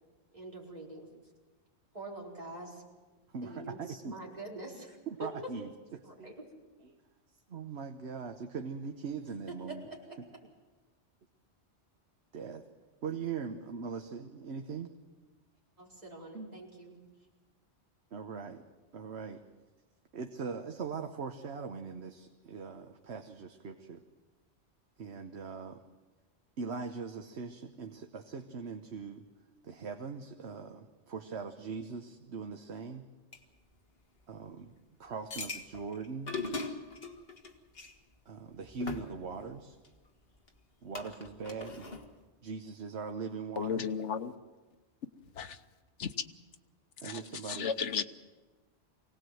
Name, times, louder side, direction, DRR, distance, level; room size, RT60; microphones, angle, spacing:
voice 1, 0.3-1.1 1.9-2.8 3.4-5.3 6.0-6.4 9.5-10.2 15.8-17.0, right 2 dB, 35° right, -4 dB, 4.9 m, -45 dB
voice 2, 3.3-4.2 5.1-6.3 6.8-7.0 7.5-9.9 10.2-10.3 12.3-12.7 13.0-14.9 16.3-16.5 18.1-18.6 18.9-19.4 20.1-24.0 25.0-25.8 26.6-29.3 29.6-33.0 34.3-34.7 35.0-36.4 38.3-39.8 40.8-41.9 42.4-43.9 47.0-47.7, right 5 dB, 70° right, 6 dB, 1.3 m, -41 dB
sound 1, 33.3-33.4 35.3-37.9 38.6-39.9 40.5-40.6 41.0-42.1, left 3 dB, 60° left, 1.9 m, -40 dB
voice 3, 43.6-44.3 45.4-45.6 46.0-46.1 47.0-48.0, left 7 dB, 90° left, 9 dB, 1.3 m, -34 dB
24.5 x 18.0 x 7.8 m, 1.3 s
omnidirectional pair, 1.2 m